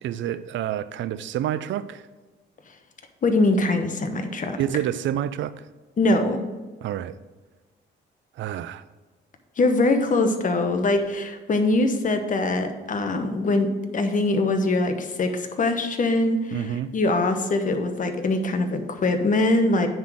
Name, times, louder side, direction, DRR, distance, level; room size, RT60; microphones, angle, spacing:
voice 1, 0.0-2.0 4.6-5.7 6.8-7.2 8.4-8.8 16.5-16.9, right 11 dB, 70° right, 0.5 m, -28 dB
voice 2, 3.2-4.6 6.0-6.4 9.6-16.6 16.9-19.9, left 2 dB, 40° left, 1.1 m, -22 dB
9.5 x 3.9 x 6.3 m
cardioid pair, 90°, 20 cm